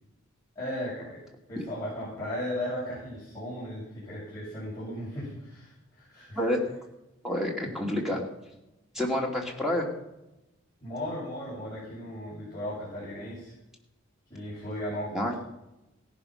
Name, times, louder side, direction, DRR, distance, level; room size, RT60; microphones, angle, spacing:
voice 1, 0.5-1.2 1.5-6.4 10.8-13.5 14.3-15.3, equal, 15° left, -10 dB, 6.8 m, -36 dB
voice 2, 6.3-6.7 7.2-8.3 8.9-9.9 15.1-15.4, left 1 dB, ahead, -1 dB, 2.7 m, -28 dB
17.0 x 11.5 x 5.8 m, 0.94 s
head